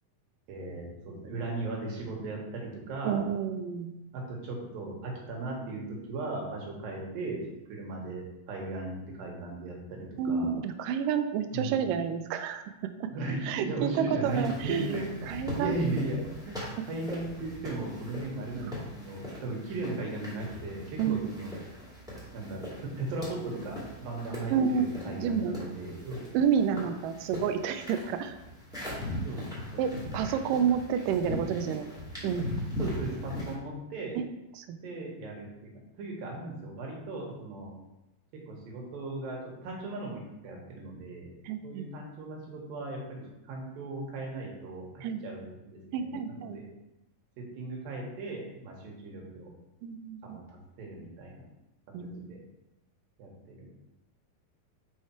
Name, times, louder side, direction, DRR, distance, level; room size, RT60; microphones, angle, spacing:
voice 1, 0.5-3.2 4.1-7.4 7.7-10.5 11.5-11.8 13.1-15.1 15.5-16.5 16.9-21.5 22.3-26.2 29.2-29.9 32.8-34.2 34.8-35.7 36.0-37.7 38.5-41.3 41.6-44.9 45.2-46.7 47.4-49.5 50.2-51.4 52.0-52.4 53.2-53.7, right 2 dB, 70° right, -1 dB, 3.0 m, -37 dB
voice 2, 3.0-3.9 10.2-13.1 13.4-14.9 15.3-15.8 18.6-18.7 21.0-21.3 24.5-25.6 26.3-28.4 29.8-31.9 32.2-32.5 34.2-34.3 34.6-34.8 41.4-41.9 45.0-45.2 45.9-46.6 49.8-50.4 51.9-52.4, right 7 dB, 85° right, 8 dB, 1.9 m, -30 dB
sound 1, 14.2-33.5, left 1 dB, ahead, 1.0 m, -40 dB
5.5 x 4.8 x 4.5 m, 0.95 s
omnidirectional pair, 4.4 m